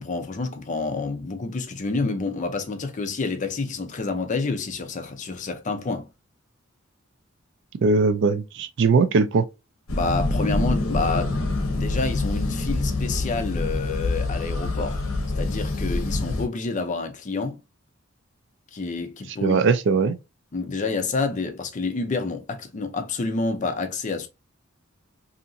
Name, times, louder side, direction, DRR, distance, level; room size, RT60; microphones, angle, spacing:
voice 1, 0.0-6.1 9.9-11.3 11.8-15.0 15.4-17.6 18.7-19.6 20.5-24.3, left 3 dB, 40° left, 0.5 m, -28 dB
voice 2, 7.8-9.4 19.4-20.1, right 4 dB, 60° right, 0.3 m, -20 dB
sound 1, 9.9-16.4, left 2 dB, 80° left, 0.7 m, -26 dB
2.8 x 2.5 x 2.5 m
head